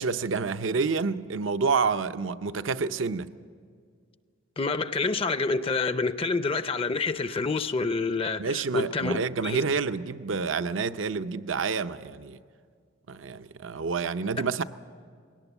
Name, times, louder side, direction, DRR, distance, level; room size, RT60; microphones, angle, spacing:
voice 1, 0.0-3.3 8.4-12.4 13.1-14.6, right 4 dB, 75° right, 0.6 m, -28 dB
voice 2, 4.6-9.2 9.4-9.6, left 3 dB, 30° left, 0.5 m, -27 dB
21.0 x 18.0 x 8.2 m
head